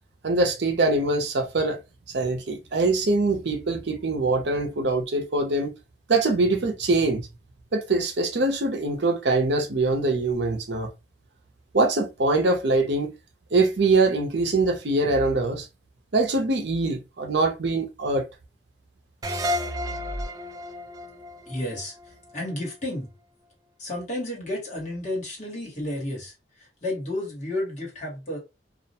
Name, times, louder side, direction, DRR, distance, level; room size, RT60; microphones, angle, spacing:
voice 1, 0.2-1.8 2.1-5.7 6.1-7.3 7.7-10.9 11.7-13.1 13.5-15.7 16.1-18.3, right 2 dB, 70° right, 0.6 m, -23 dB
sound 1, 19.2-22.5, equal, 20° right, 0.4 m, -31 dB
voice 2, 21.5-21.9 22.3-23.1 23.8-28.4, left 1 dB, 40° left, 1.3 m, -32 dB
2.4 x 2.1 x 2.7 m
head